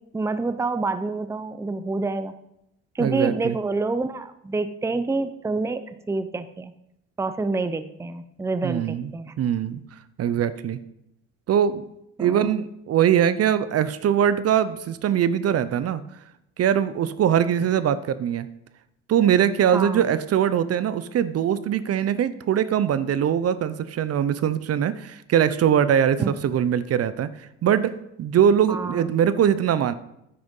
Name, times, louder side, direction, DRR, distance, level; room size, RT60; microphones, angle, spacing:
voice 1, 0.0-2.3 2.9-5.8 6.1-6.7 7.2-9.3 12.2-12.5 19.7-20.1 26.2-26.4 28.7-29.1, right 3 dB, 10° right, 11 dB, 0.6 m, -27 dB
voice 2, 3.0-3.6 8.6-9.1 9.4-9.8 10.2-10.8 11.5-11.9 12.2-16.0 16.6-18.5 19.1-27.3 27.6-27.9 28.2-29.9, right 9 dB, 45° right, 15 dB, 0.7 m, -22 dB
9.7 x 7.7 x 5.5 m, 0.82 s
supercardioid pair, 80°, 33 cm